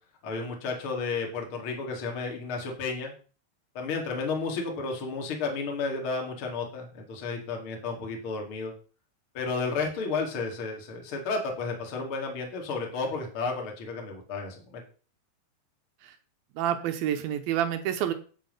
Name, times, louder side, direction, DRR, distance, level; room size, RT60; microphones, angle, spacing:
voice 1, 0.2-3.1 3.7-8.7 9.3-14.8, left 4 dB, 40° left, 2 dB, 2.2 m, -32 dB
voice 2, 16.6-18.1, right 10 dB, 75° right, 8 dB, 2.4 m, -28 dB
9.0 x 7.4 x 5.4 m, 0.39 s
omnidirectional pair, 4.9 m